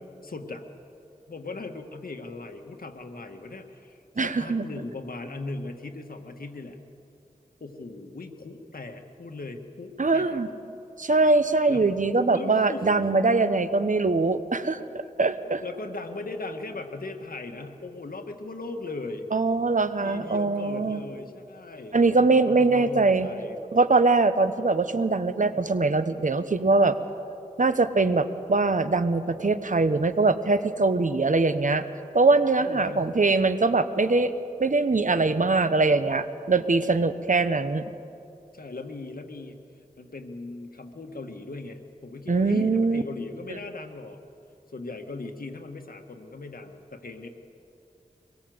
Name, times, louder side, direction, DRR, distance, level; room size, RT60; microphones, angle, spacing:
voice 1, 0.2-0.6 1.3-6.8 7.6-10.4 11.7-13.0 15.4-19.3 20.0-23.6 25.4-25.7 32.6-33.1 38.5-39.6 40.0-44.2 44.7-47.3, left 3 dB, 85° left, 5 dB, 1.8 m, -38 dB
voice 2, 4.2-4.6 10.0-10.5 11.0-15.6 19.3-21.0 21.9-23.3 23.7-27.0 27.6-31.8 32.1-34.3 34.6-37.8 42.3-43.0, right 3 dB, 60° right, 11 dB, 1.2 m, -22 dB
24.0 x 21.5 x 8.0 m, 2.7 s
wide cardioid pair, 55°, 15 cm